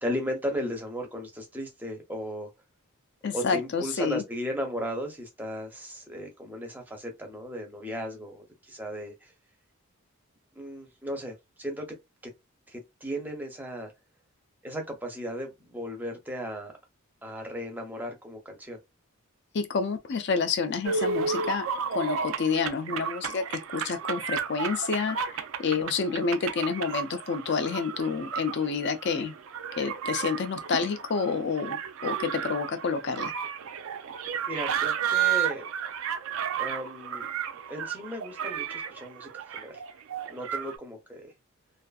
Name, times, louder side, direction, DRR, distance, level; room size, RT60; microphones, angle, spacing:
voice 1, 0.0-2.5 3.3-9.3 10.6-12.0 12.7-13.9 14.6-16.7 17.2-18.8 34.5-35.7 36.6-37.3 37.7-39.8 40.3-41.3, equal, 10° right, 0.6 m, -36 dB
voice 2, 3.2-4.2 19.5-21.7 21.9-29.3 29.8-33.3, left 5 dB, 50° left, 0.4 m, -29 dB
sound 1, 20.8-40.8, right 7 dB, 60° right, 0.3 m, -33 dB
2.5 x 2.4 x 2.3 m
head